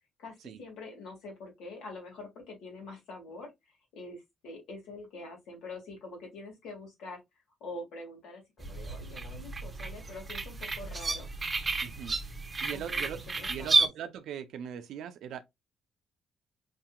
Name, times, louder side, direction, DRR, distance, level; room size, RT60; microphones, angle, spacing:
voice 1, 0.2-3.5 3.9-7.2 7.6-11.3 12.7-13.9, left 2 dB, 80° left, 2.0 m, -45 dB
sound 1, 8.6-13.9, right 3 dB, 25° right, 0.8 m, -31 dB
voice 2, 11.8-13.2 13.5-15.4, right 9 dB, 75° right, 0.5 m, -40 dB
5.1 x 2.9 x 2.3 m
cardioid pair, 125°, 0 cm